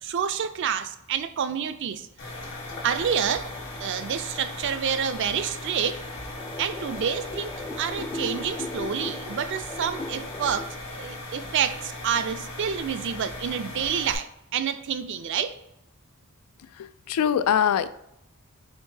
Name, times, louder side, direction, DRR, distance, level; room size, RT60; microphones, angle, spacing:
voice 1, 0.0-2.1 2.8-3.5 3.8-6.0 6.6-14.3 14.5-15.6, right 7 dB, 55° right, 11 dB, 0.4 m, -28 dB
sound 1, 2.2-14.1, left 2 dB, 55° left, 1.3 m, -38 dB
sound 2, 2.7-10.6, left 2 dB, 20° left, 0.4 m, -39 dB
voice 2, 16.8-17.9, left 8 dB, 90° left, 15 dB, 0.3 m, -23 dB
4.5 x 3.6 x 2.7 m, 0.79 s
head